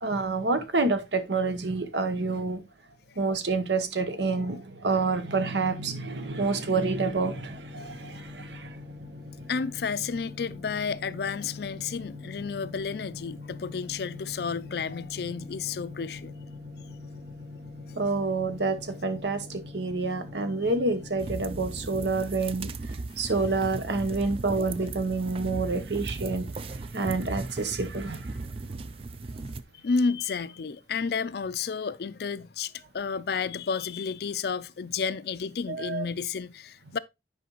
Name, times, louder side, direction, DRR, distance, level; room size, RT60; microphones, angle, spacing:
voice 1, 0.0-2.6 3.2-8.8 18.0-28.4 35.7-36.0, right 3 dB, 80° right, 1.0 m, -28 dB
sound 1, 6.1-22.1, left 3 dB, 55° right, 1.1 m, -43 dB
voice 2, 9.5-16.3 23.1-23.3 29.8-37.0, left 5 dB, 60° left, 0.4 m, -31 dB
sound 2, 21.2-29.6, right 3 dB, 30° right, 0.4 m, -37 dB
9.4 x 5.0 x 3.0 m
head